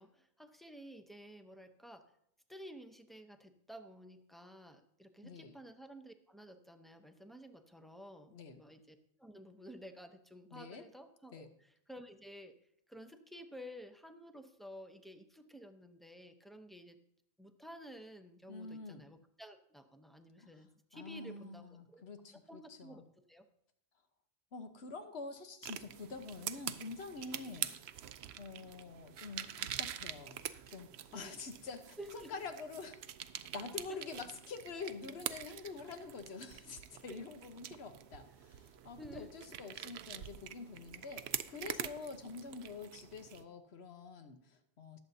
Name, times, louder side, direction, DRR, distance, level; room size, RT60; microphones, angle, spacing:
voice 1, 0.0-2.1 2.5-12.5 12.9-17.0 17.4-22.0 22.5-23.5 27.4-27.6 31.1-31.3 32.0-32.3 33.9-34.2 35.5-35.7 37.1-37.3 39.0-39.3 41.8-41.9, equal, ahead, 7 dB, 0.6 m, -52 dB
voice 2, 5.2-5.5 8.3-8.6 10.5-10.8 11.3-11.5 18.5-19.0 20.4-20.5 20.9-23.1 24.5-27.7 28.0-28.1 28.4-33.0 33.5-45.0, left 4 dB, 85° left, 7 dB, 1.3 m, -47 dB
sound 1, 25.6-43.4, right 10 dB, 85° right, 0.8 m, -45 dB
19.5 x 7.5 x 2.7 m, 0.74 s
omnidirectional pair, 1.1 m